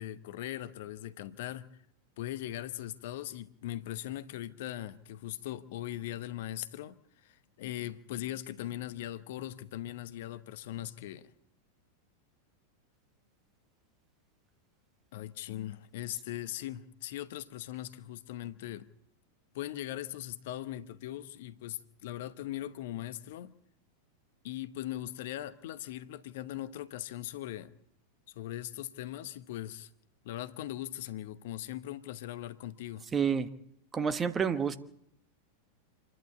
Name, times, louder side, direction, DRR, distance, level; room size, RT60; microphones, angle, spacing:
voice 1, 0.0-1.7 2.2-11.3 15.1-18.9 19.5-23.6 24.4-27.7 28.3-29.9 30.2-33.1, left 13 dB, 55° left, 0.9 m, -40 dB
voice 2, 33.1-33.5 33.9-34.8, right 6 dB, 20° right, 1.4 m, -29 dB
27.0 x 11.0 x 8.6 m
figure-of-eight pair, 90°, 0 cm